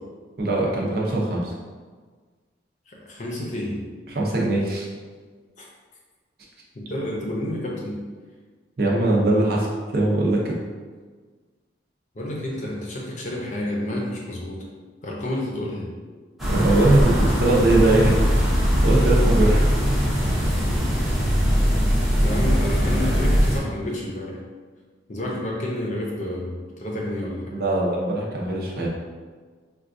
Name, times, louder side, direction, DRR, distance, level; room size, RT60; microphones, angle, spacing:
voice 1, 0.4-1.5 4.1-4.9 8.8-10.5 16.5-18.5 18.8-19.7 20.2-20.3 27.5-28.9, right 2 dB, 55° right, -3 dB, 0.6 m, -21 dB
voice 2, 2.9-3.9 5.6-5.7 6.7-7.9 12.1-14.6 15.0-15.9 22.2-24.4 25.1-27.5, left 1 dB, 40° left, -3 dB, 0.6 m, -30 dB
sound 1, 16.4-23.6, equal, ahead, 0.6 m, -20 dB
4.4 x 2.3 x 2.5 m, 1.5 s
head